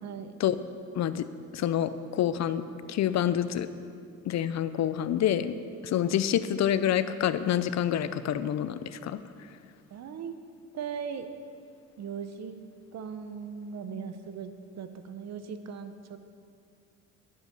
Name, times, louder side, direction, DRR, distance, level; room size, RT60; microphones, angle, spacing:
voice 1, 0.0-0.3 9.9-10.3 10.7-11.3 12.0-12.6 12.9-16.2, right 6 dB, 60° right, 9 dB, 0.9 m, -38 dB
voice 2, 1.0-1.3 1.5-2.6 2.9-3.7 4.3-5.5 5.8-9.2, left 10 dB, 60° left, 13 dB, 0.6 m, -27 dB
10.5 x 8.8 x 6.1 m, 2.3 s
cardioid pair, 90°, 30 cm